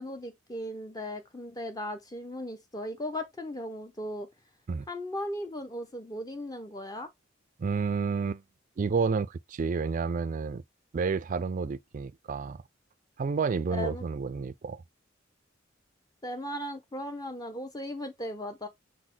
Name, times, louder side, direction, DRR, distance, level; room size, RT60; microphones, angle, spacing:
voice 1, 0.0-4.3 4.9-7.1 13.7-14.0 16.2-18.7, left 1 dB, 20° left, 0.7 m, -37 dB
voice 2, 7.6-8.4 8.8-10.6 10.9-12.6 13.2-14.8, right 5 dB, 40° right, 0.3 m, -30 dB
6.2 x 2.1 x 3.8 m
head